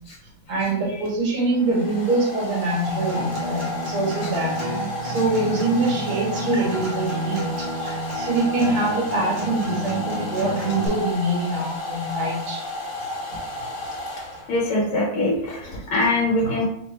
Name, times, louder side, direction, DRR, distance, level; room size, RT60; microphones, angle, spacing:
voice 1, 0.5-4.5 5.0-12.6 16.4-16.5, right 2 dB, 90° right, -4 dB, 2.2 m, -24 dB
Domestic sounds home sounds, 1.0-14.8, left 2 dB, 60° left, 0.5 m, -32 dB
Acoustic guitar, 2.9-10.9, right 1 dB, 40° right, 0.9 m, -31 dB
voice 2, 14.5-16.6, left 2 dB, 75° left, -3 dB, 1.7 m, -22 dB
4.5 x 2.1 x 4.3 m, 0.75 s
omnidirectional pair, 2.4 m